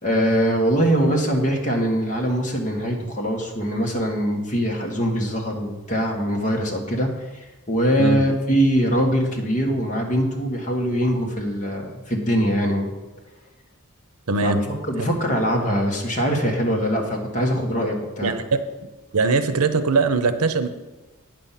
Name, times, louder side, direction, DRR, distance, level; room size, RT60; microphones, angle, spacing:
voice 1, 0.0-12.9 14.4-14.6 14.9-18.3, equal, 35° left, 1 dB, 1.5 m, -22 dB
voice 2, 14.3-14.6 15.0-15.1 18.2-18.6 19.1-20.7, right 4 dB, 85° right, 10 dB, 0.7 m, -21 dB
9.0 x 6.9 x 5.8 m, 1.1 s
head